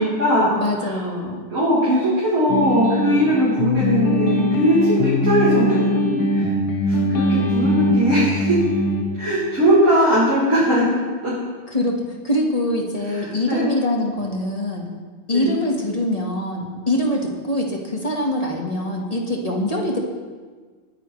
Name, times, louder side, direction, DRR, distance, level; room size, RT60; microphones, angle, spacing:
voice 1, 0.0-0.5 0.8-1.0 1.5-6.5 6.9-8.6 9.1-10.8 11.2-11.3 13.2-13.6 15.3-15.5, equal, 35° right, -10 dB, 3.8 m, -20 dB
voice 2, 0.6-1.5 6.9-7.2 10.4-10.6 11.7-14.9 15.3-20.0, left 1 dB, 20° left, 0 dB, 1.2 m, -24 dB
sound 1, 2.5-9.0, left 1 dB, 65° left, 2.1 m, -21 dB
21.5 x 10.0 x 3.2 m, 1.5 s
omnidirectional pair, 2.4 m